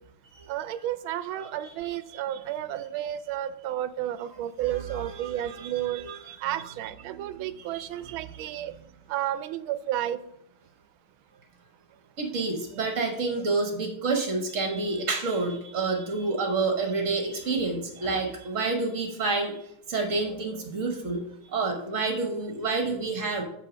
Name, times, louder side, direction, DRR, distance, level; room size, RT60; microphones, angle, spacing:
voice 1, 0.5-8.7 9.1-10.2, right 12 dB, 80° right, 14 dB, 1.4 m, -32 dB
voice 2, 1.4-1.7 4.7-5.7 6.0-6.3 7.7-7.9 12.2-19.6 19.9-23.4, right 3 dB, 45° right, 3 dB, 1.3 m, -29 dB
8.4 x 6.7 x 5.0 m, 0.77 s
omnidirectional pair, 2.2 m